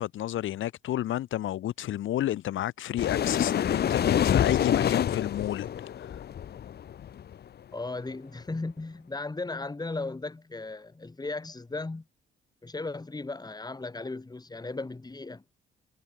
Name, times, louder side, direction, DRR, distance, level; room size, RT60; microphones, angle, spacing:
voice 1, 0.0-6.2, left 13 dB, 80° left, 6.3 m, -31 dB
sound 1, 3.0-7.3, left 9 dB, 55° left, 1.1 m, -27 dB
voice 2, 7.7-12.0 12.6-15.4, left 3 dB, 20° left, 7.1 m, -36 dB
cardioid pair, 90°, 20 cm